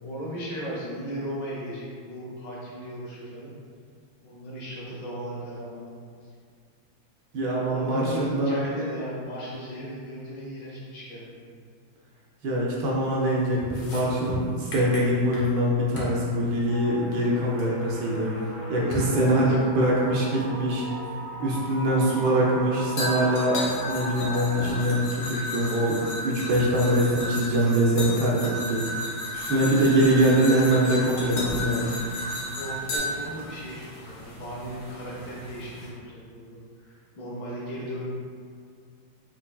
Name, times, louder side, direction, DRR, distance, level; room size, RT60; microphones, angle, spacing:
voice 1, 0.0-3.5 4.2-5.9 7.6-11.5 18.7-19.6 32.5-38.1, equal, 70° left, -5 dB, 1.4 m, -36 dB
voice 2, 7.3-8.6 12.4-18.3 18.7-20.9 21.4-29.0 29.3-32.0, right 1 dB, 75° right, -4 dB, 1.1 m, -23 dB
sound 1, 13.6-15.6 16.0-16.2 17.6-17.7 18.9-19.2 20.4-20.5 23.0-33.0, left 1 dB, 85° left, 1.7 m, -33 dB
sound 2, 16.7-24.7, right 1 dB, 90° right, 1.8 m, -38 dB
sound 3, 29.3-35.9, equal, 40° left, 0.9 m, -43 dB
4.5 x 3.1 x 2.2 m, 2.2 s
omnidirectional pair, 2.1 m